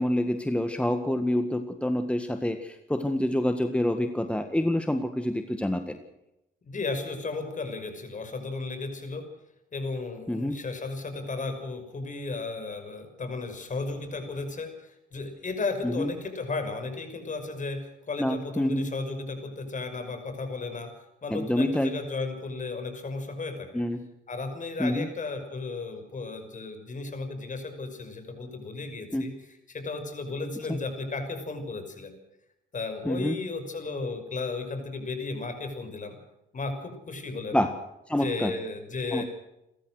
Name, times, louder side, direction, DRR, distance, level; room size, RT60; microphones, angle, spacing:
voice 1, 0.0-6.0 10.3-10.6 16.0-16.1 18.2-18.9 21.3-21.9 23.7-24.0 24.8-25.1 29.1-29.2 33.1-33.3 37.5-37.7 38.1-38.5 39.1-39.2, left 1 dB, 5° left, 7 dB, 1.7 m, -27 dB
voice 2, 6.6-9.3 9.7-20.9 21.2-23.8 24.3-32.1 32.7-36.2 36.5-37.6 38.1-39.2, left 3 dB, 40° left, 7 dB, 5.9 m, -34 dB
28.5 x 14.0 x 6.4 m, 0.88 s
cardioid pair, 90°, 20 cm